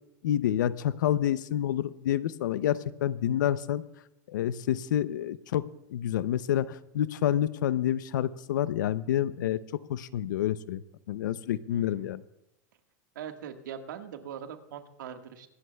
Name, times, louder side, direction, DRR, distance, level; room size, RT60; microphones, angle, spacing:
voice 1, 0.2-3.8 4.3-5.6 5.9-9.6 9.9-10.8 11.1-12.2, left 11 dB, 85° left, 17 dB, 0.6 m, -28 dB
voice 2, 11.7-12.1 13.1-15.5, right 8 dB, 85° right, 6 dB, 1.5 m, -41 dB
24.5 x 12.0 x 2.3 m, 0.84 s
supercardioid pair, 120°, 10 cm